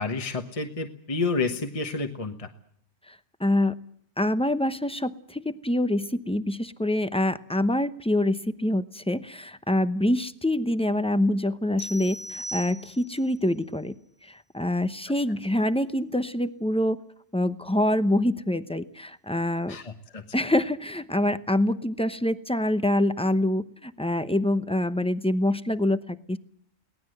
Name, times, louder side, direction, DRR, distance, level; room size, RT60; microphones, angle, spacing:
voice 1, 0.0-2.5 19.7-20.2, left 3 dB, 30° left, 6 dB, 1.3 m, -30 dB
voice 2, 3.4-3.7 4.2-13.9 14.2-17.0 17.3-19.8 20.3-26.4, left 1 dB, 5° left, 11 dB, 0.7 m, -25 dB
sound 1, 11.8-13.3, right 1 dB, 75° right, 3.9 m, -38 dB
23.5 x 18.0 x 7.9 m, 0.65 s
omnidirectional pair, 1.2 m